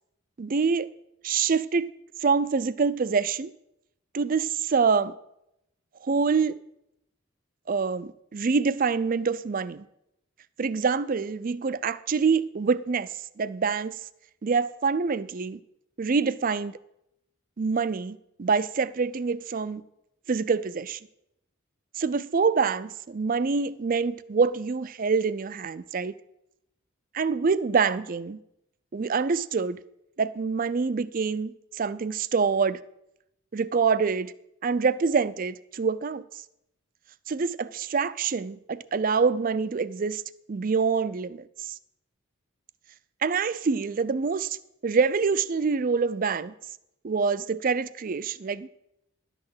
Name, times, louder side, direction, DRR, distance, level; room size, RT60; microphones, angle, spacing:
voice 1, 0.4-0.9 1.2-1.9 2.2-3.5 4.1-5.1 6.0-6.6 7.7-9.8 10.6-13.1 13.4-14.0 14.4-15.6 16.0-16.8 17.6-19.8 20.3-21.0 22.0-26.1 27.1-28.4 28.9-29.8 30.2-32.8 33.5-34.3 34.6-36.2 37.3-40.2 40.5-41.7 43.2-44.6 44.8-46.5 47.0-48.7, right 5 dB, 40° right, 0.4 m, -26 dB
11.5 x 6.6 x 7.8 m
head